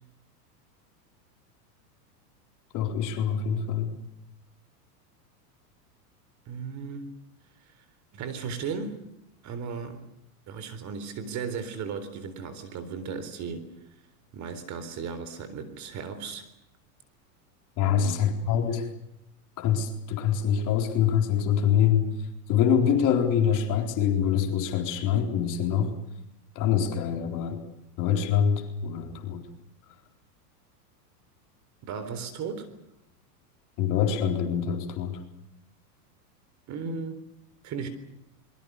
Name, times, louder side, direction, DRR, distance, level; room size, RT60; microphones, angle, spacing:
voice 1, 2.7-3.9 17.8-18.9 19.6-22.1 22.5-25.9 26.6-27.6 28.0-29.5 33.8-35.2, left 8 dB, 40° left, 4 dB, 4.2 m, -25 dB
voice 2, 6.5-7.1 8.1-9.0 9.4-10.0 10.5-13.7 14.3-16.5 17.8-18.2 31.8-32.7 36.7-37.2 37.6-37.9, right 5 dB, 35° right, 11 dB, 3.9 m, -35 dB
27.0 x 22.5 x 6.7 m, 0.86 s
supercardioid pair, 135°, 48 cm